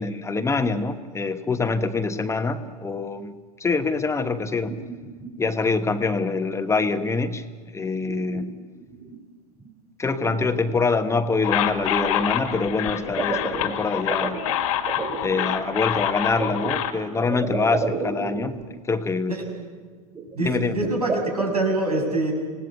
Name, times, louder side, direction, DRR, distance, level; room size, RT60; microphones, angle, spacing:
voice 1, 0.0-3.3 3.6-4.7 5.4-7.4 7.7-8.5 10.0-14.4 15.2-19.4 20.4-20.8, left 4 dB, 15° left, 9 dB, 1.2 m, -25 dB
sound 1, 4.3-5.5 5.9-6.3 6.8-7.2 7.5-9.2 9.6-9.7 10.1-11.3 12.5-15.6 16.4-18.8 19.1-19.2 19.5-19.6 20.1-21.5, right 4 dB, 20° right, 3.4 m, -33 dB
sound 2, 11.4-16.9, left 11 dB, 60° left, 2.0 m, -26 dB
voice 2, 19.3-19.6 20.3-22.3, right 2 dB, 85° right, 1 dB, 6.8 m, -25 dB
26.0 x 18.5 x 8.3 m, 1.5 s
figure-of-eight pair, 90°, 20 cm